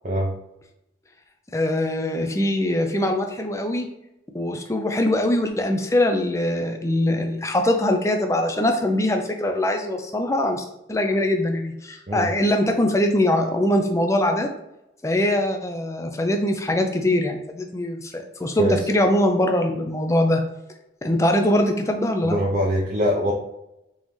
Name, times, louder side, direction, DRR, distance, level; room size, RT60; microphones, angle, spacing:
voice 1, 1.5-3.9 4.3-14.5 15.0-20.4 21.0-22.4, left 1 dB, 15° left, 4 dB, 0.5 m, -22 dB
voice 2, 22.2-23.3, equal, 45° right, -3 dB, 0.6 m, -22 dB
3.9 x 3.8 x 3.1 m, 0.87 s
head